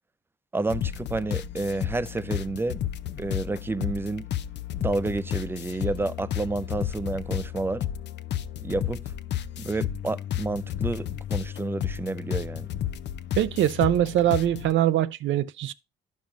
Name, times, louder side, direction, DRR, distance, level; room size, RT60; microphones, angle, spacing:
voice 1, 0.5-2.8 3.2-4.3 4.8-7.8 8.6-9.0 9.6-12.7, right 2 dB, 10° right, 0.4 m, -30 dB
sound 1, 0.7-14.7, left 11 dB, 60° left, 0.5 m, -32 dB
voice 2, 13.4-15.7, right 12 dB, 75° right, 0.5 m, -23 dB
11.5 x 5.3 x 2.5 m
cardioid pair, 90°, 20 cm